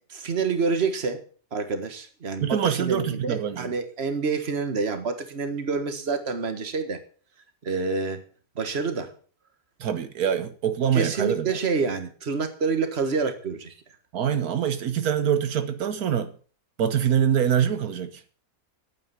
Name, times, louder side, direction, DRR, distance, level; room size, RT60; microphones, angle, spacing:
voice 1, 0.1-1.2 1.5-7.0 7.6-8.2 8.5-9.1 10.9-13.7, right 4 dB, 45° right, 1.8 m, -27 dB
voice 2, 2.4-3.7 9.8-11.5 14.1-16.3 16.8-18.2, right 8 dB, 85° right, 1.5 m, -24 dB
10.5 x 9.3 x 7.0 m
omnidirectional pair, 1.5 m